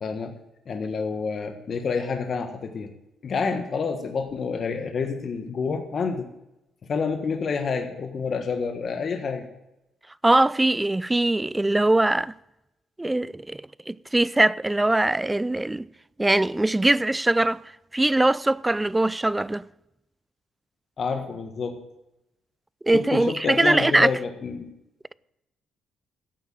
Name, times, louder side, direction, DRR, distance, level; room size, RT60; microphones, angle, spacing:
voice 1, 0.0-0.3 0.7-2.9 3.2-6.3 6.9-9.5 21.0-21.8 22.9-24.7, left 5 dB, 50° left, 1.4 m, -28 dB
voice 2, 10.2-12.3 13.0-15.9 16.2-17.6 17.9-19.6 22.8-24.1, right 2 dB, 15° right, 0.4 m, -21 dB
12.0 x 8.4 x 8.8 m
cardioid pair, 90°, 0 cm